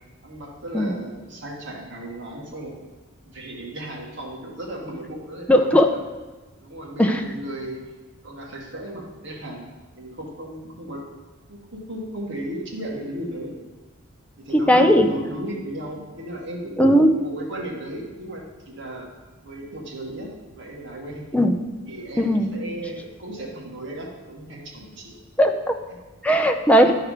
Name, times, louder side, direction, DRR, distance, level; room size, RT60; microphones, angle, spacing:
voice 1, 0.2-2.7 3.3-6.0 6.6-7.8 8.2-9.7 9.9-11.1 11.5-13.5 14.4-16.8 17.1-19.1 19.4-21.3 21.9-25.2 26.8-27.0, right 1 dB, 60° right, -2 dB, 1.7 m, -35 dB
voice 2, 5.5-5.9 7.0-7.2 14.5-15.1 16.8-17.1 21.3-21.6 22.2-22.5 25.4-25.7 26.2-26.9, equal, 5° left, 4 dB, 0.5 m, -17 dB
11.5 x 4.6 x 5.0 m, 1.2 s
head